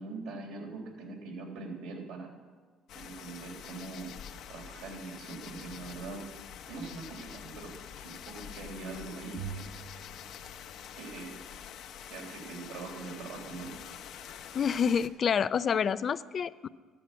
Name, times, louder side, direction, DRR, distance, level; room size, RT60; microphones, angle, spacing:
voice 1, 0.0-2.3 2.9-4.1 4.5-6.2 6.7-9.6 11.0-11.4 12.1-13.7, right 3 dB, 80° right, 0 dB, 3.8 m, -42 dB
sound 1, 2.9-15.1, left 9 dB, 65° left, 0.9 m, -46 dB
Bowed string instrument, 9.4-11.8, right 8 dB, 35° right, 0.6 m, -46 dB
voice 2, 14.5-16.7, left 7 dB, 40° left, 15 dB, 0.4 m, -28 dB
13.5 x 10.5 x 8.3 m, 1.5 s
cardioid pair, 110°, 0 cm